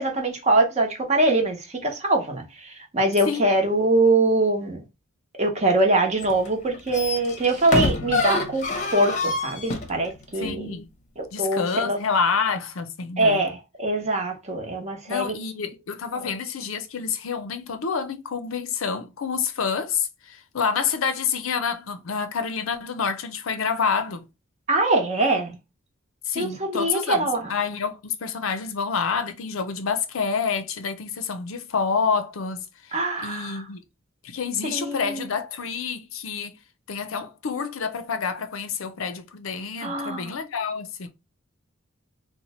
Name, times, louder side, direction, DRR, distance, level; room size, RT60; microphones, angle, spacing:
voice 1, 0.0-4.8 5.3-10.8 11.2-12.0 13.2-15.3 16.2-16.3 24.7-25.6 26.3-27.5 32.9-33.6 34.6-35.3 39.8-40.4, right 2 dB, 35° right, 0.9 m, -23 dB
sound 1, 6.2-6.5 6.7-10.0 10.4-10.5, left 3 dB, 35° left, 0.7 m, -26 dB
voice 2, 10.4-10.9 11.3-13.4 15.1-24.2 26.3-32.6 32.9-33.8 34.2-36.6 36.9-41.1, left 5 dB, 75° left, 0.5 m, -28 dB
2.9 x 2.1 x 4.1 m
head